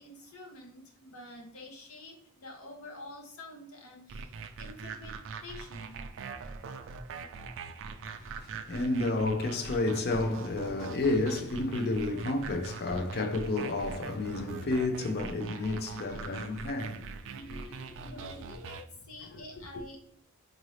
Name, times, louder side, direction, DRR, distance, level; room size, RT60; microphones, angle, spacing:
voice 1, 0.0-6.0 18.1-20.0, left 2 dB, 70° left, 0.9 m, -48 dB
sound 1, 4.1-18.8, right 4 dB, 60° right, 0.4 m, -42 dB
voice 2, 8.1-17.1 17.3-18.3 19.3-19.4, left 2 dB, 45° left, 0.5 m, -31 dB
3.9 x 2.6 x 3.1 m
head